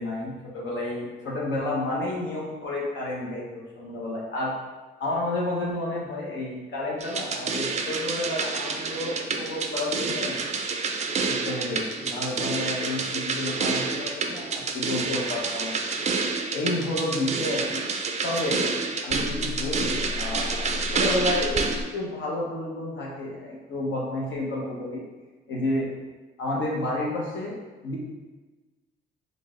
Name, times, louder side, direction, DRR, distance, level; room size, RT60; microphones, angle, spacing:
voice 1, 0.0-4.5 5.0-10.4 11.2-15.7 16.5-17.8 18.2-18.7 19.0-25.0 25.5-25.9 26.4-27.6 27.8-28.0, left 2 dB, 70° left, -4 dB, 1.2 m, -30 dB
sound 1, 7.0-21.8, right 4 dB, 35° right, 0.4 m, -28 dB
3.9 x 2.5 x 3.7 m, 1.3 s
cardioid pair, 90°, 20 cm